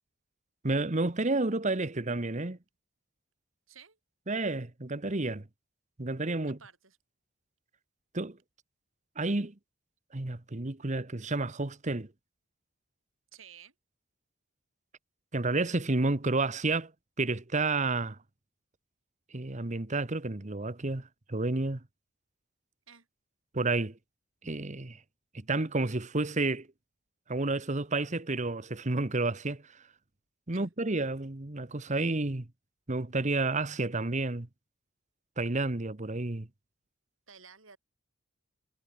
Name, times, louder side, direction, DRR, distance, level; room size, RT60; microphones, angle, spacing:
voice 1, 0.6-2.6 4.3-5.5 6.0-6.6 8.1-8.4 9.2-9.5 10.1-12.1 15.3-16.9 17.2-18.2 19.3-21.8 23.5-24.0 24.4-25.0 25.3-26.7 27.3-29.6 30.5-32.5 32.9-34.5 35.4-36.5, right 2 dB, 35° right, 1.2 m, -30 dB
voice 2, 3.7-4.0 6.4-7.0 13.3-13.7 22.9-23.1 30.5-30.7 37.3-37.8, right 7 dB, 75° right, 7.9 m, -53 dB
head